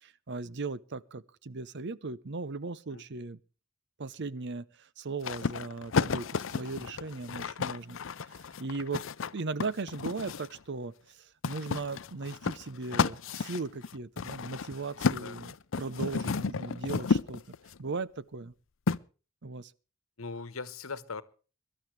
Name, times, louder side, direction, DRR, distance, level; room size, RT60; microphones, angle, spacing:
voice 1, 0.0-3.4 4.0-8.0 8.3-9.1 9.3-17.4 17.8-18.5 19.4-19.7, right 3 dB, 55° right, 0.7 m, -38 dB
sound 1, 5.2-10.6 11.4-17.8 18.9-19.0, left 5 dB, 65° left, 0.6 m, -32 dB
voice 2, 20.2-21.2, left 4 dB, 80° left, 1.2 m, -39 dB
23.5 x 12.5 x 3.3 m
head